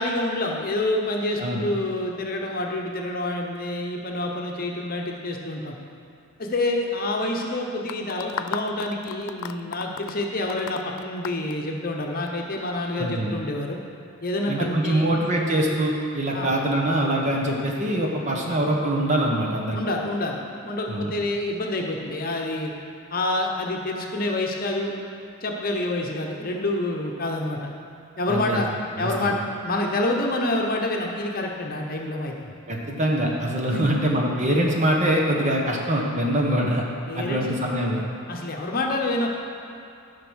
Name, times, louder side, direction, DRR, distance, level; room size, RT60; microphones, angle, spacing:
voice 1, 0.0-5.7 6.4-13.8 14.2-15.1 16.3-16.5 19.7-20.4 20.6-22.7 23.1-24.9 25.4-27.7 28.2-28.7 29.0-29.4 29.6-32.5 33.7-34.0 34.5-34.6 37.1-37.5 38.3-39.3, left 2 dB, 40° left, 1 dB, 0.9 m, -27 dB
sound 1, 7.9-12.3, left 7 dB, 60° left, 0.4 m, -35 dB
voice 2, 13.0-13.3 14.5-19.8 20.9-21.1 28.3-28.6 29.0-29.3 32.7-36.8 37.2-38.0, right 1 dB, 35° right, -1 dB, 1.1 m, -24 dB
12.0 x 5.2 x 6.3 m, 2.5 s
head